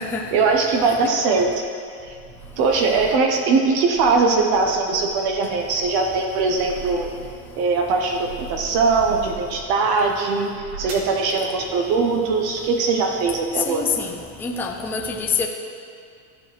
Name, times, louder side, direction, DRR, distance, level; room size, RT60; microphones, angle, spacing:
voice 1, 0.3-1.7 2.1-2.2 2.6-7.1 7.6-13.8, right 4 dB, 50° right, 2 dB, 1.0 m, -21 dB
sound 1, 1.4-3.3 3.7-7.5 7.9-9.7 10.4-11.2, right 5 dB, 70° right, 1.7 m, -40 dB
voice 2, 13.7-14.1 14.4-15.5, left 5 dB, 5° left, 0 dB, 0.4 m, -25 dB
14.0 x 4.8 x 3.2 m, 2.2 s
supercardioid pair, 120°, 48 cm